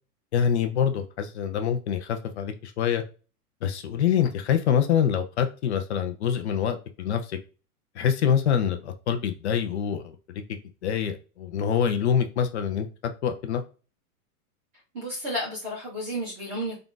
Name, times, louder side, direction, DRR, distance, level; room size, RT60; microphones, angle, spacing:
voice 1, 0.3-3.0 3.6-7.4 8.0-10.4 10.8-12.9 13.2-13.6, left 8 dB, 45° left, 6 dB, 0.5 m, -25 dB
voice 2, 14.9-16.8, equal, 10° right, -5 dB, 0.4 m, -32 dB
3.7 x 2.3 x 3.7 m, 0.35 s
supercardioid pair, 170°, 46 cm